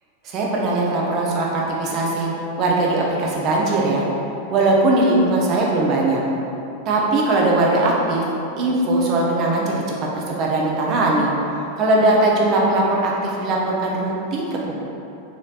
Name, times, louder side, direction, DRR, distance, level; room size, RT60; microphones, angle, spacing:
voice 1, 0.2-2.3 2.6-4.1 4.5-6.2 6.9-8.2 8.6-9.8 10.1-11.3 11.8-14.8, right 2 dB, 35° right, -3 dB, 0.6 m, -20 dB
4.0 x 3.1 x 2.4 m, 2.9 s
figure-of-eight pair, 90°, 0 cm